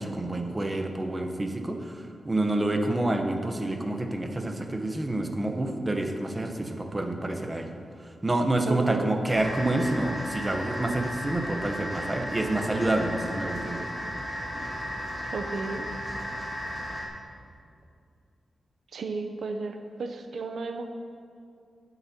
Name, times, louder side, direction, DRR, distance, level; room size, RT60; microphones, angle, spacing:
voice 1, 0.0-7.7 8.0-13.9, right 1 dB, 20° right, 4 dB, 0.9 m, -28 dB
voice 2, 8.7-9.1 15.3-15.9 18.9-20.9, right 3 dB, 65° right, 6 dB, 0.6 m, -34 dB
sound 1, 9.3-17.1, equal, 5° right, 2.0 m, -35 dB
19.5 x 8.0 x 2.9 m, 2.4 s
wide cardioid pair, 135°, 0 cm